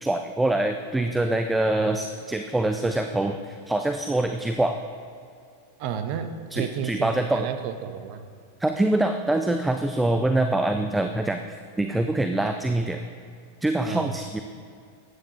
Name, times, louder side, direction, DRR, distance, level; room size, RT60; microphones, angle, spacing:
voice 1, 0.0-4.8 6.5-7.5 8.6-11.4 11.8-13.0 13.6-14.4, right 2 dB, 5° right, 6 dB, 0.5 m, -24 dB
voice 2, 5.8-8.2 10.1-10.3 13.8-14.1, right 8 dB, 45° right, 8 dB, 0.7 m, -32 dB
14.0 x 9.7 x 2.8 m, 2.4 s
figure-of-eight pair, 90°, 0 cm